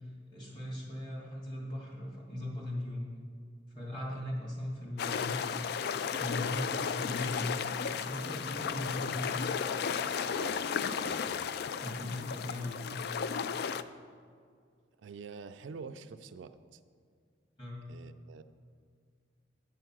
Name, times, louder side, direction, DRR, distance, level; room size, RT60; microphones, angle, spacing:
voice 1, 0.3-3.0 3.7-5.3 6.2-7.6 7.9-9.4 11.8-12.8 17.6-17.8, left 1 dB, 25° left, -4 dB, 2.4 m, -38 dB
sound 1, 5.0-13.8, left 7 dB, 60° left, 0.3 m, -34 dB
voice 2, 10.2-11.5 15.0-16.8 17.9-18.4, right 5 dB, 80° right, 10 dB, 0.4 m, -47 dB
9.1 x 5.6 x 6.1 m, 2.2 s
head